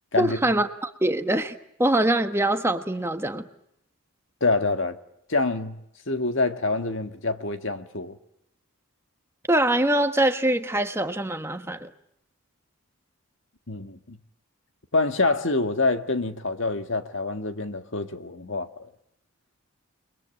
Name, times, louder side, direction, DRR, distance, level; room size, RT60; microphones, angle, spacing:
voice 1, 0.2-3.4 9.5-11.9, right 1 dB, 10° right, 1.3 m, -23 dB
voice 2, 4.4-5.0 5.3-5.8 6.1-8.2 13.7-14.2 14.9-18.9, left 3 dB, 55° left, 1.9 m, -26 dB
30.0 x 21.5 x 8.9 m
head